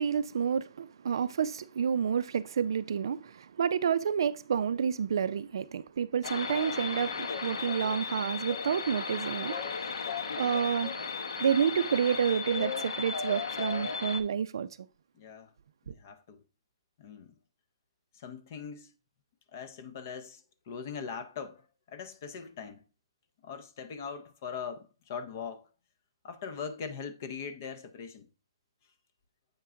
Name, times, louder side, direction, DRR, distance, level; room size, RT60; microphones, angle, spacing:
voice 1, 0.0-9.6 10.4-10.9 11.4-14.7 15.9-16.0, right 7 dB, 55° right, 0.4 m, -29 dB
sound 1, 6.2-14.2, left 5 dB, 65° left, 0.9 m, -35 dB
voice 2, 15.2-15.5 15.9-16.4 17.0-17.3 18.1-18.9 19.5-20.4 20.7-21.6 21.9-22.8 23.4-25.7 26.2-28.3, left 6 dB, 35° left, 0.6 m, -41 dB
7.9 x 4.5 x 3.6 m
hypercardioid pair, 170°, 3 cm